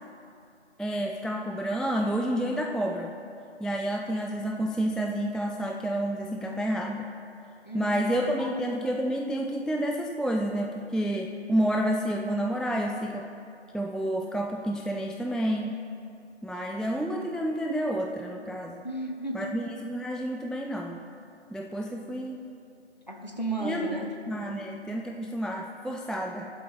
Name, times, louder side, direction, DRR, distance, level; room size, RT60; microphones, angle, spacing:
voice 1, 0.8-3.1 3.6-7.1 7.7-13.3 13.7-15.8 16.4-18.9 19.3-21.0 21.5-22.5 23.6-23.9 24.3-26.5, right 1 dB, ahead, 1 dB, 0.3 m, -29 dB
voice 2, 7.6-8.5 16.8-17.0 18.8-19.5 23.1-24.1, right 1 dB, 35° left, 2 dB, 0.9 m, -34 dB
13.5 x 7.6 x 4.1 m, 2.4 s
figure-of-eight pair, 170°, 35 cm